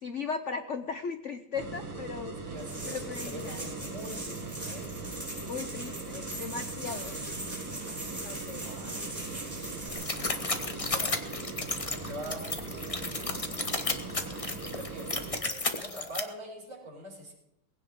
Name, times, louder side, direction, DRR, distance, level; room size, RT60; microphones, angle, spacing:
voice 1, 0.0-2.4 2.9-3.6 5.5-7.1 8.2-8.7, left 5 dB, 75° left, 8 dB, 0.6 m, -37 dB
sound 1, 1.5-15.4, right 3 dB, 85° right, 3.5 m, -40 dB
voice 2, 2.4-4.9 8.6-9.0 9.3-10.0 10.9-11.2 11.9-13.4 14.6-17.3, right 1 dB, 60° right, -4 dB, 6.1 m, -44 dB
sound 2, 2.6-10.7, right 1 dB, 5° right, 5.5 m, -41 dB
sound 3, 9.9-16.2, left 3 dB, 25° left, 0.8 m, -33 dB
20.0 x 16.5 x 3.7 m, 0.81 s
omnidirectional pair, 2.3 m